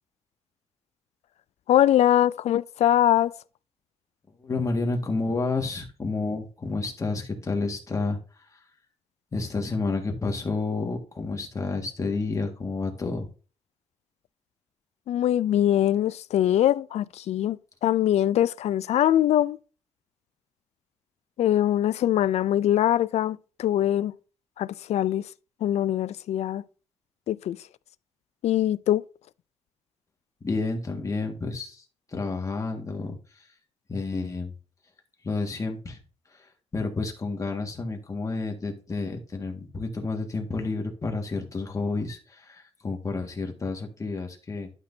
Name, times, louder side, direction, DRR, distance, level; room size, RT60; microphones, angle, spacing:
voice 1, 1.7-3.4 15.1-19.6 21.4-24.1 24.6-25.3 25.6-26.6 27.3-27.6 28.4-29.0, left 12 dB, 75° left, 0.4 m, -22 dB
voice 2, 4.4-8.2 9.3-13.3 30.4-31.8 32.1-33.2 33.9-34.5 35.2-36.0 36.3-36.4 36.7-44.7, left 3 dB, 30° left, 1.8 m, -30 dB
11.5 x 6.0 x 2.7 m
cardioid pair, 115°, 11 cm